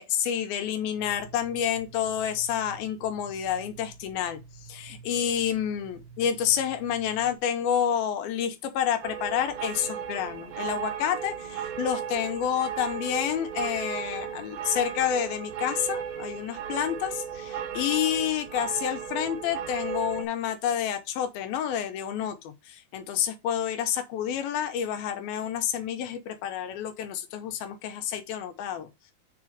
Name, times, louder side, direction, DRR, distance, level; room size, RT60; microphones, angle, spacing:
voice 1, 0.0-4.4 4.7-28.9, left 9 dB, 80° left, 2.6 m, -29 dB
sound 1, 0.9-7.4, right 5 dB, 55° right, 2.0 m, -49 dB
sound 2, 9.0-20.3, right 8 dB, 80° right, 2.5 m, -35 dB
4.9 x 4.8 x 5.0 m
omnidirectional pair, 4.4 m